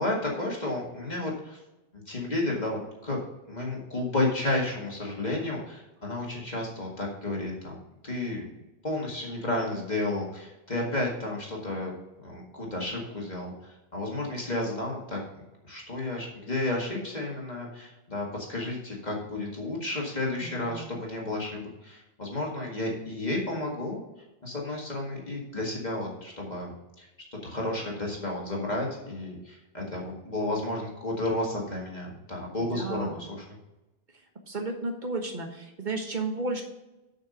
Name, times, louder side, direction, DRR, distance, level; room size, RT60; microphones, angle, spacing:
voice 1, 0.0-1.6 1.9-3.2 3.5-7.8 8.0-8.5 8.8-11.9 12.2-24.0 24.4-26.7 27.0-33.4, left 2 dB, 45° left, -2 dB, 2.0 m, -32 dB
voice 2, 20.4-20.9 32.7-33.3 34.1-36.6, right 3 dB, 50° right, 3 dB, 1.4 m, -33 dB
6.7 x 5.9 x 6.5 m, 1.0 s
omnidirectional pair, 1.1 m